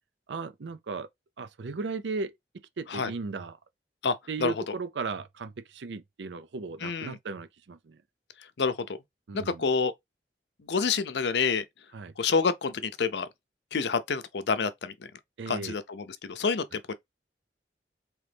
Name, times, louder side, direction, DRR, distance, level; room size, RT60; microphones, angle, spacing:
voice 1, 0.3-1.1 1.4-2.3 2.8-3.6 4.3-8.0 9.3-9.7 11.9-12.1 15.4-15.7, right 4 dB, 85° right, 0.5 m, -36 dB
voice 2, 4.0-4.7 6.8-7.2 8.6-9.0 9.3-9.9 10.7-11.6 12.2-13.3 13.7-14.9 15.5-16.9, left 5 dB, 70° left, 0.6 m, -28 dB
3.8 x 3.0 x 3.4 m
head